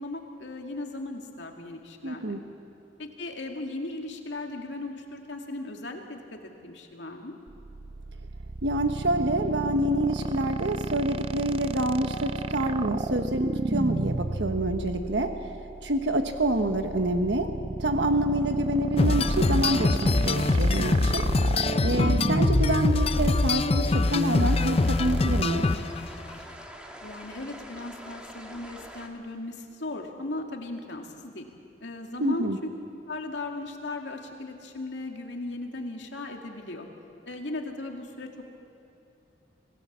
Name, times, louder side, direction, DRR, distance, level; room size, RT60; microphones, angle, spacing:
voice 1, 0.0-2.4 3.0-7.3 27.0-31.5 31.8-32.5 33.1-36.9 37.3-38.3, left 2 dB, 85° left, 2 dB, 2.4 m, -37 dB
voice 2, 2.0-2.4 8.6-15.3 15.8-17.5 17.8-21.2 21.8-25.7 32.2-32.6, right 1 dB, 80° right, 6 dB, 1.2 m, -27 dB
sound 1, 7.5-24.7, right 2 dB, 35° right, 0.4 m, -32 dB
sound 2, 19.0-26.1, left 2 dB, 35° left, 0.6 m, -24 dB
sound 3, 24.1-29.1, equal, 5° right, 1.8 m, -44 dB
26.0 x 17.5 x 7.4 m, 2.7 s
head